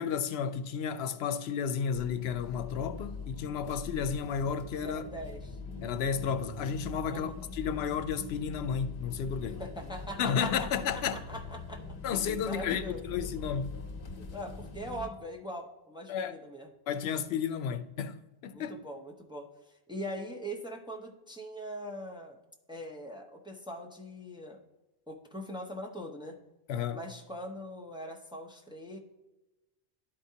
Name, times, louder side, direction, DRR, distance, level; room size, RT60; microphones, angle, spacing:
voice 1, 0.0-5.0 5.8-9.6 10.2-11.2 12.0-13.8 16.1-16.4 16.9-18.8 26.7-27.0, left 7 dB, 90° left, 0.8 m, -32 dB
sound 1, 1.9-15.1, left 3 dB, 65° left, 1.1 m, -43 dB
voice 2, 4.8-5.6 7.1-7.3 9.4-11.8 12.1-13.0 14.3-16.7 18.5-22.4 22.7-24.6 25.1-26.4 26.9-29.0, equal, 5° right, 0.7 m, -42 dB
11.5 x 4.7 x 2.7 m
omnidirectional pair, 1.0 m